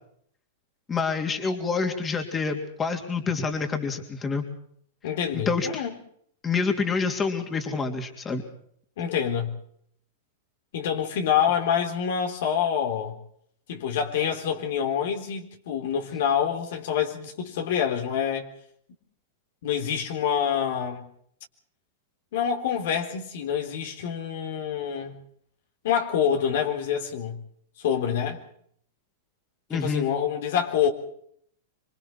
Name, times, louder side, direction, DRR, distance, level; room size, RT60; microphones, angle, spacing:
voice 1, 0.9-4.5 5.5-5.8 6.4-8.4 29.7-30.1, left 4 dB, 20° left, 5 dB, 3.4 m, -27 dB
voice 2, 5.0-5.9 9.0-9.6 10.7-13.2 13.7-18.5 19.6-21.0 22.3-25.2 25.8-27.4 27.8-28.4 29.7-30.9, left 8 dB, 65° left, 4 dB, 3.8 m, -26 dB
27.0 x 24.0 x 4.5 m, 0.65 s
hypercardioid pair, 110°, 0 cm